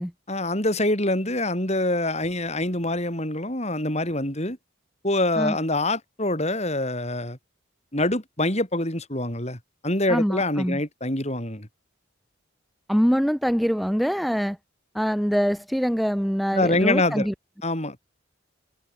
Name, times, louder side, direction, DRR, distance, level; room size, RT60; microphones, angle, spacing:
voice 1, 0.3-4.6 5.0-7.4 7.9-9.6 9.8-11.7 16.5-17.3 17.6-18.0, left 1 dB, 30° left, 6.2 m, -25 dB
voice 2, 10.1-10.8 12.9-14.6 14.9-17.3, equal, ahead, 2.6 m, -24 dB
head